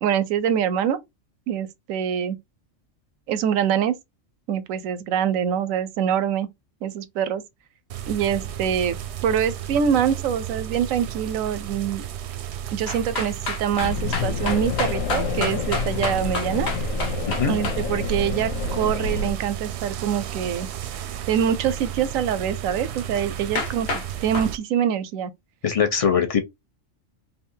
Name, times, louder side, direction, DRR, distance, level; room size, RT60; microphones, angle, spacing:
voice 1, 0.0-1.0 1.5-2.4 3.3-3.9 4.5-6.5 6.8-7.4 8.1-9.0 9.2-12.0 12.7-16.7 17.4-20.7 21.3-25.3, right 8 dB, 90° right, 1.0 m, -24 dB
sound 1, 7.9-24.6, right 10 dB, 65° right, 0.8 m, -33 dB
sound 2, 12.9-17.8 23.2-23.3 23.6-24.1 24.3-24.5, left 3 dB, 60° left, 1.1 m, -28 dB
sound 3, 13.8-19.3, left 4 dB, 90° left, 1.1 m, -28 dB
voice 2, 25.6-26.4, left 7 dB, 35° left, 0.6 m, -21 dB
3.6 x 2.8 x 2.7 m
omnidirectional pair, 1.3 m